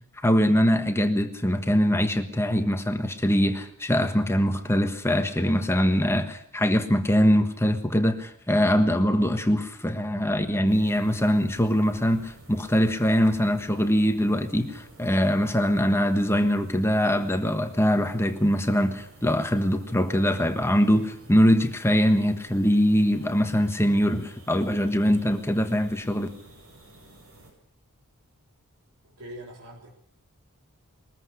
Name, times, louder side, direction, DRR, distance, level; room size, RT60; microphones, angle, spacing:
voice 1, 0.2-26.3, equal, 10° left, 7 dB, 1.4 m, -23 dB
sound 1, 10.7-27.5, right 2 dB, 65° right, 7.8 m, -52 dB
voice 2, 29.0-29.9, equal, 85° right, -2 dB, 3.7 m, -42 dB
21.5 x 14.0 x 9.8 m, 0.68 s
head